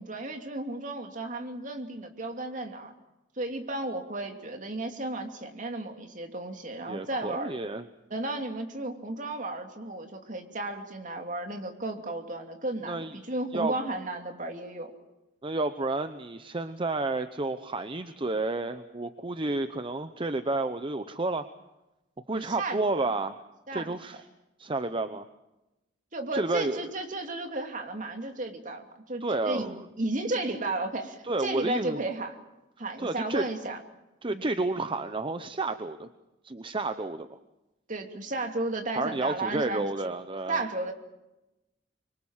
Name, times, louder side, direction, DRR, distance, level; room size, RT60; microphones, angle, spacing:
voice 1, 0.0-2.9 3.4-7.5 8.1-14.9 22.3-23.1 23.7-23.9 26.1-32.4 32.8-33.8 34.3-34.5 37.9-39.9 40.5-40.9, right 2 dB, 45° right, 4 dB, 2.8 m, -34 dB
voice 2, 6.9-7.9 12.9-13.1 13.5-13.7 15.4-21.4 22.3-23.4 23.7-24.2 24.6-25.3 26.3-26.8 29.2-29.8 31.2-32.0 33.0-33.4 34.2-36.1 36.4-37.4 38.9-40.6, right 2 dB, 30° right, 10 dB, 0.8 m, -30 dB
25.0 x 24.5 x 7.3 m, 0.98 s
head